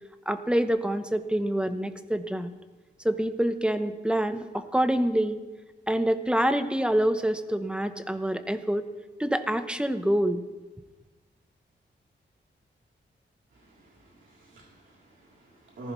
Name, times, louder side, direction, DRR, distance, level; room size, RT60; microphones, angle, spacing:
voice 1, 0.3-2.5 3.0-5.4 5.9-8.8 9.2-10.4, right 1 dB, 5° right, 9 dB, 0.8 m, -26 dB
voice 2, 13.5-15.9, right 2 dB, 90° right, -3 dB, 3.3 m, -46 dB
19.0 x 14.5 x 3.1 m, 1.2 s
wide cardioid pair, 100°, 19 cm